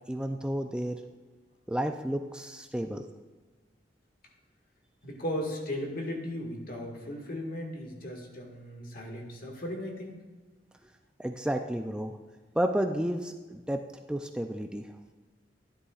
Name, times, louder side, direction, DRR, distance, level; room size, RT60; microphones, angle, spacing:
voice 1, 0.1-1.0 1.7-3.0 11.2-12.1 12.6-13.8 14.1-14.9, right 1 dB, 5° right, 4 dB, 0.4 m, -31 dB
voice 2, 5.0-10.1, left 1 dB, 55° left, 1 dB, 1.8 m, -36 dB
13.0 x 11.0 x 2.4 m, 1.3 s
head